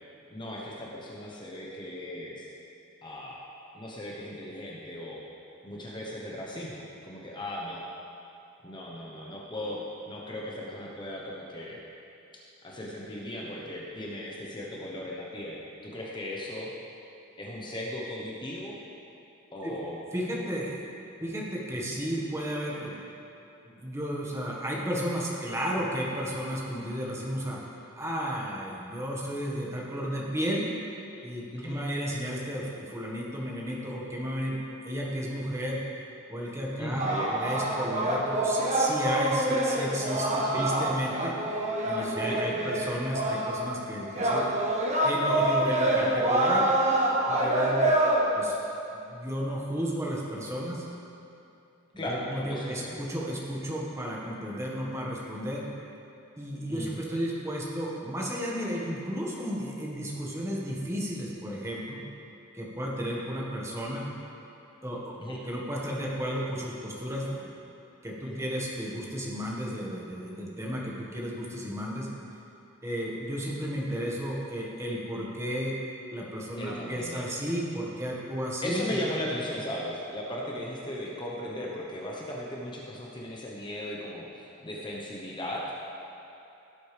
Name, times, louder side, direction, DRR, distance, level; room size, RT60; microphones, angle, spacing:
voice 1, 0.3-2.5 3.0-3.4 3.7-5.2 5.6-7.8 8.6-11.8 12.6-16.7 17.4-18.8 19.5-20.0 21.8-21.9 31.5-31.8 36.8-37.7 40.4-40.7 42.2-42.7 52.0-52.2 52.5-53.0 56.7-57.1 65.2-65.4 68.2-68.5 76.6-77.3 78.6-85.6, left 1 dB, 20° left, -3 dB, 1.0 m, -37 dB
voice 2, 20.1-20.8 21.2-22.9 23.6-27.6 27.9-30.6 31.2-35.8 36.3-44.5 45.0-46.7 47.3-47.9 48.3-48.6 48.9-50.8 51.9-55.6 56.4-62.0 62.5-64.1 64.8-67.6 68.0-72.1 72.8-75.8 76.1-79.0, equal, 15° right, -4 dB, 1.5 m, -33 dB
sound 1, 37.0-43.8 44.1-48.2, right 1 dB, 35° right, 1.1 m, -26 dB
16.5 x 7.8 x 3.4 m, 2.8 s
head